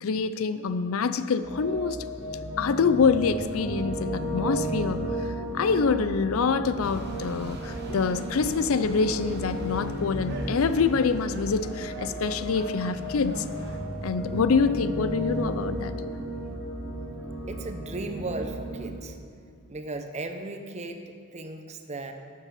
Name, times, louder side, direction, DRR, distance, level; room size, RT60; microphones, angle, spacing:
voice 1, 0.0-2.1 2.6-5.3 5.5-13.5 14.0-16.0, left 5 dB, 70° left, 12 dB, 0.4 m, -26 dB
sound 1, 1.4-18.9, right 1 dB, 5° left, 2.0 m, -34 dB
sound 2, 6.8-13.8, right 2 dB, 50° right, 1.2 m, -42 dB
voice 2, 17.5-19.2 19.7-22.1, right 2 dB, 30° right, 7 dB, 0.7 m, -36 dB
12.0 x 7.2 x 5.9 m, 2.2 s
head